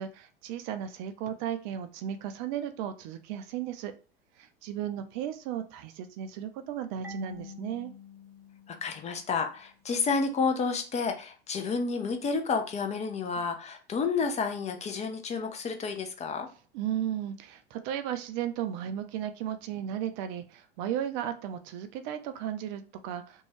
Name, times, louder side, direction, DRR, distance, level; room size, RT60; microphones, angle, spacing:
voice 1, 0.0-3.9 4.4-7.9 16.7-23.4, right 10 dB, 50° right, 9 dB, 0.4 m, -35 dB
Marimba xylophone / Wood, 7.0-9.8, left 4 dB, 80° right, 1.0 m, -47 dB
voice 2, 8.7-16.5, left 5 dB, 25° left, 5 dB, 0.5 m, -30 dB
2.6 x 2.2 x 3.0 m, 0.35 s
figure-of-eight pair, 80°, 30 cm